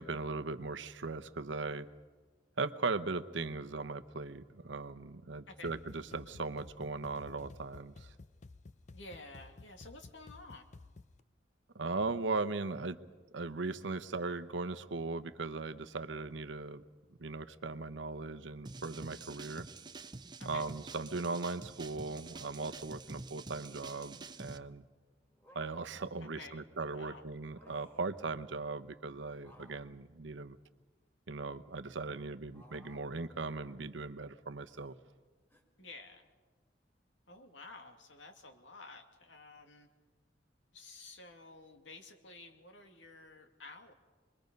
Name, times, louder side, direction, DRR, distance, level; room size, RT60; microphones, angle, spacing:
voice 1, 0.0-1.9 2.6-8.1 11.7-13.0 13.3-16.8 17.2-19.7 20.4-24.8 25.5-30.6 31.3-34.9, right 3 dB, 80° right, 10 dB, 0.9 m, -38 dB
sound 1, 5.6-11.2, left 3 dB, 40° left, 0.6 m, -54 dB
voice 2, 8.9-10.7 20.4-20.7 26.2-26.7 26.9-27.2 35.8-36.3 37.3-39.9 40.7-43.9, left 3 dB, 85° left, 4 dB, 2.3 m, -52 dB
sound 2, 18.7-24.6, right 3 dB, 25° right, 0.6 m, -48 dB
sound 3, 21.7-23.4 25.2-26.0 27.4-28.2 29.4-31.2 32.5-33.1 33.4-33.9 34.6-34.9 35.5-35.6, equal, 15° left, 2.2 m, -63 dB
27.0 x 22.0 x 5.3 m, 1.4 s
head